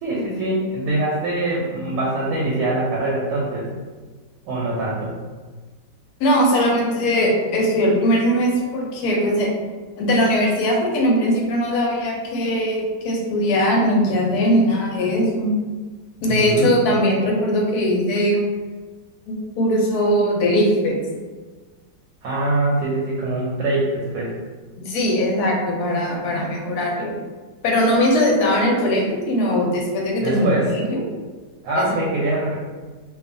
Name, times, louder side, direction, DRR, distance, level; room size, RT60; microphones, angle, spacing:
voice 1, 0.0-3.7 4.5-5.1 16.3-16.7 22.2-24.3 30.2-30.7 31.6-32.5, right 2 dB, 75° right, -5 dB, 1.1 m, -23 dB
voice 2, 6.2-9.5 10.0-15.5 16.2-18.5 19.3-21.0 24.9-27.2 27.6-31.0 31.8-31.9, equal, 70° left, -1 dB, 1.0 m, -20 dB
2.7 x 2.3 x 2.5 m, 1.3 s
omnidirectional pair, 1.9 m